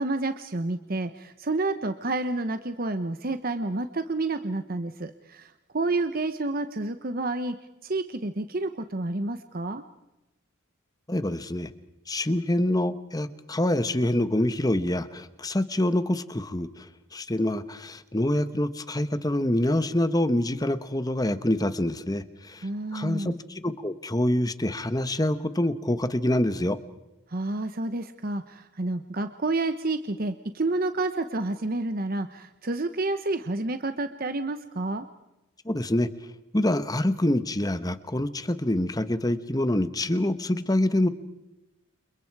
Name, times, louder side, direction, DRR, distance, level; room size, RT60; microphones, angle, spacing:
voice 1, 0.0-7.6 7.8-9.8 22.6-23.3 27.3-35.1, right 2 dB, 45° right, 9 dB, 0.9 m, -29 dB
voice 2, 11.1-11.7 12.1-16.9 17.1-22.7 22.9-26.8 35.6-36.1 36.5-41.1, left 1 dB, 20° left, 12 dB, 1.1 m, -26 dB
29.5 x 28.5 x 4.8 m, 0.96 s
head